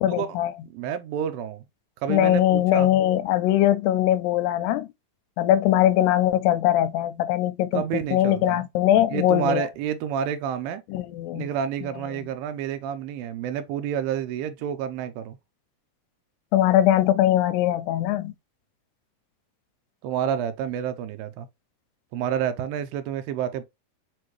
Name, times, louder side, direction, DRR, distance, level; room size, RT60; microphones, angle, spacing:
voice 1, 0.0-0.5 2.1-4.9 5.4-7.8 8.1-9.7 10.9-11.5 11.8-12.3 16.5-18.3, left 12 dB, 85° left, 2.2 m, -21 dB
voice 2, 0.7-1.6 2.0-2.9 7.7-8.6 9.1-10.8 11.3-15.4 20.0-21.5 22.1-23.6, right 9 dB, 85° right, 2.4 m, -29 dB
6.1 x 2.6 x 3.0 m
omnidirectional pair, 4.1 m